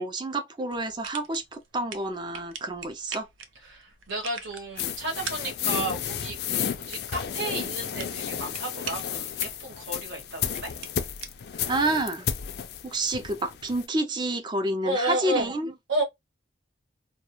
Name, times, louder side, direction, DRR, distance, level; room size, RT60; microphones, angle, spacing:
voice 1, 0.0-3.3 11.7-12.3 12.8-15.7, right 2 dB, 25° right, 0.3 m, -29 dB
sound 1, 0.7-12.6, right 6 dB, 85° right, 0.5 m, -44 dB
voice 2, 3.6-10.7 14.8-15.5 15.9-16.0, right 1 dB, 70° right, 1.0 m, -32 dB
sound 2, 4.8-13.9, left 8 dB, 55° left, 0.3 m, -32 dB
2.3 x 2.1 x 2.9 m
head